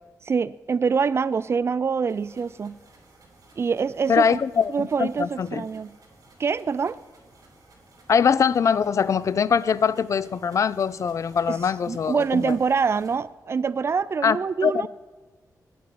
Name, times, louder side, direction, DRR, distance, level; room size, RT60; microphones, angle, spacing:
voice 1, 0.2-2.8 3.6-4.4 4.7-5.9 6.4-7.0 11.5-11.6 11.9-14.9, right 5 dB, 40° right, 0.4 m, -25 dB
sound 1, 2.1-13.2, right 2 dB, 60° right, 4.0 m, -55 dB
voice 2, 4.1-5.6 8.1-12.6 14.2-14.4 14.6-14.9, left 6 dB, 50° left, 0.3 m, -22 dB
9.4 x 8.5 x 6.9 m
wide cardioid pair, 130°, 7 cm